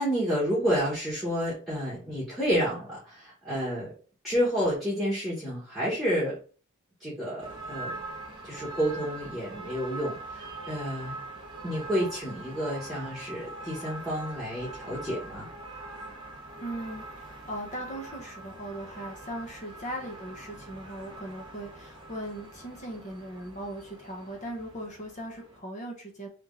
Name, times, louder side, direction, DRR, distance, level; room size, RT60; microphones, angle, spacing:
voice 1, 0.0-3.9 4.2-6.4 7.0-7.9 8.4-11.2 11.6-15.5, equal, ahead, -8 dB, 1.2 m, -30 dB
sound 1, 7.4-25.6, right 2 dB, 20° right, 0.7 m, -43 dB
voice 2, 16.6-26.3, right 1 dB, 35° left, 0 dB, 0.8 m, -39 dB
3.4 x 3.0 x 3.7 m, 0.38 s
head